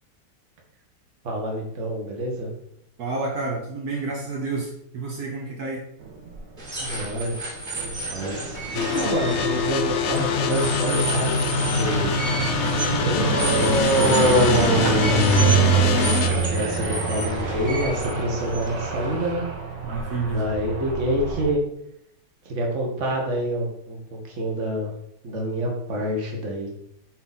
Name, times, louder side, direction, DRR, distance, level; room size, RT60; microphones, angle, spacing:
voice 1, 1.2-2.5 6.8-7.4 7.7-12.2 12.7-19.4 20.3-21.6 22.4-24.9 25.2-26.7, equal, 45° right, 0 dB, 1.7 m, -28 dB
voice 2, 3.0-5.8 8.7-9.4 19.8-20.4, right 3 dB, 65° right, -2 dB, 1.6 m, -30 dB
sound 1, 6.0-6.8 7.5-21.5, right 3 dB, 80° right, 2.0 m, -25 dB
sound 2, 6.6-19.3, right 2 dB, 25° right, 2.0 m, -32 dB
sound 3, 8.7-16.3, left 5 dB, 60° left, 0.7 m, -24 dB
8.9 x 4.1 x 4.1 m, 0.77 s
omnidirectional pair, 1.9 m